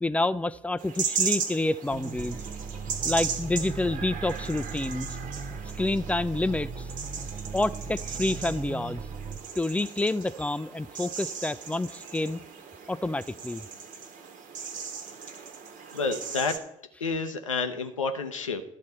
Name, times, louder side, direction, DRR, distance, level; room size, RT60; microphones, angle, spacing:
voice 1, 0.0-2.4 3.0-5.1 5.8-6.9 7.5-9.0 9.6-12.4 12.9-13.7, left 2 dB, 10° left, 16 dB, 0.4 m, -28 dB
sound 1, 0.8-16.6, right 6 dB, 55° right, 1.3 m, -37 dB
sound 2, 1.9-9.4, right 5 dB, 40° right, 0.7 m, -38 dB
voice 2, 15.9-16.6 17.0-18.6, left 4 dB, 85° left, 7 dB, 0.7 m, -29 dB
12.0 x 4.2 x 7.7 m, 0.78 s
figure-of-eight pair, 50°, 16 cm